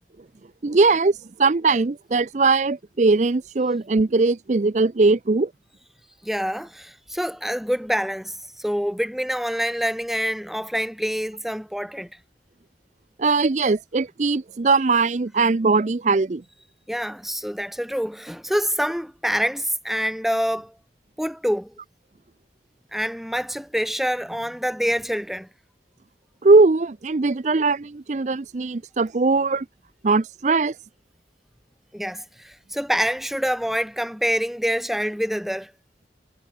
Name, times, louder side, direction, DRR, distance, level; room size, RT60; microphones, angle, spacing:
voice 1, 0.6-5.5 13.2-16.4 26.4-29.7 30.0-30.8, right 3 dB, 40° right, 0.5 m, -20 dB
voice 2, 6.2-12.1 16.9-20.7 21.2-21.7 22.9-25.5 31.9-35.7, equal, ahead, 4.0 m, -26 dB
head